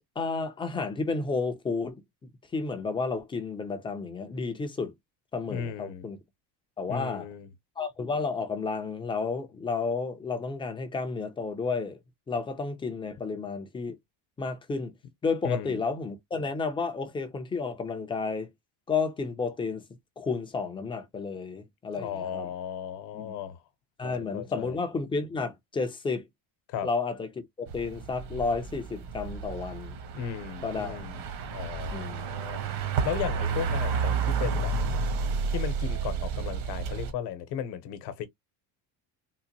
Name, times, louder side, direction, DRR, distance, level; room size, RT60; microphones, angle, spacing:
voice 1, 0.2-2.0 2.5-4.9 5.3-6.2 6.8-7.3 7.8-12.0 12.3-14.0 14.4-14.9 15.2-18.5 18.9-19.8 20.2-22.5 23.1-23.3 24.0-26.2 26.8-30.0 30.6-31.0 31.9-32.2, left 4 dB, 10° left, 0.4 m, -31 dB
voice 2, 5.5-6.1 6.9-7.5 15.4-15.8 22.0-23.6 24.0-24.8 26.7-26.9 30.1-31.2 31.5-32.6 33.0-34.7 35.5-38.3, left 9 dB, 65° left, 0.9 m, -35 dB
sound 1, 27.7-37.1, right 5 dB, 60° right, 1.1 m, -31 dB
3.8 x 2.5 x 2.8 m
cardioid pair, 180°, 44 cm